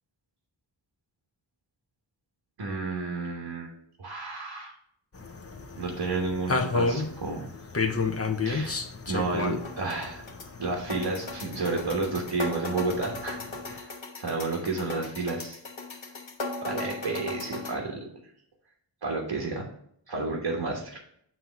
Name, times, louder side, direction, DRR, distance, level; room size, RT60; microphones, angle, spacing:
voice 1, 2.6-3.7 4.0-4.7 5.7-7.5 8.4-8.8 9.1-10.2 10.6-13.4 13.7-13.9 14.2-15.6 16.6-18.1 19.0-19.7 20.1-21.0, right 3 dB, 75° right, -1 dB, 1.2 m, -31 dB
sound 1, 5.1-13.8, left 4 dB, 30° left, 0.7 m, -33 dB
sound 2, 9.6-17.7, left 3 dB, 90° left, 1.0 m, -38 dB
7.6 x 2.8 x 5.7 m, 0.69 s
wide cardioid pair, 60°, 45 cm